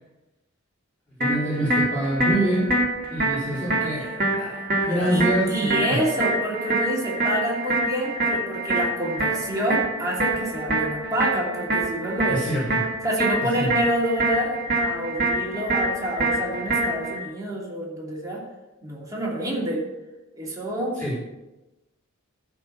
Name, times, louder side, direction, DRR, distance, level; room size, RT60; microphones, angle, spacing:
voice 1, 1.2-2.7 3.1-6.0 12.3-12.8 13.6-13.7 20.9-21.2, right 1 dB, 10° left, -12 dB, 4.3 m, -26 dB
sound 1, 1.2-17.2, right 1 dB, 45° right, 2.1 m, -26 dB
voice 2, 5.1-12.5 13.0-18.5 18.8-19.9 20.3-21.0, right 1 dB, 15° right, -4 dB, 2.8 m, -28 dB
13.5 x 5.0 x 6.5 m, 1.0 s
head